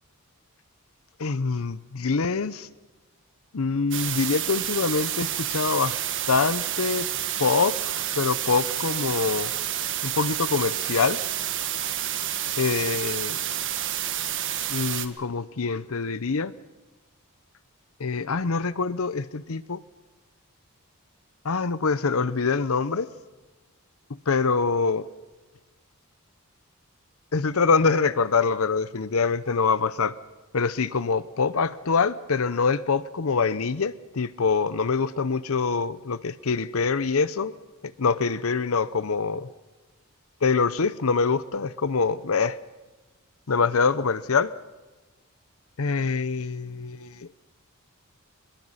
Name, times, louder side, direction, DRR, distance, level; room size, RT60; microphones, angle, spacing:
voice 1, 1.2-2.7 3.5-6.0 6.3-7.1 7.4-7.8 8.2-9.5 10.0-11.2 12.6-13.4 14.7-16.5 18.0-19.8 21.4-23.1 24.3-25.1 27.3-30.2 30.5-37.5 37.8-39.5 40.4-42.6 43.5-44.5 45.8-47.3, left 4 dB, 70° left, 16 dB, 0.7 m, -25 dB
sound 1, 3.9-15.1, right 11 dB, 55° right, 1.5 m, -29 dB
23.5 x 21.5 x 5.6 m, 1.2 s
head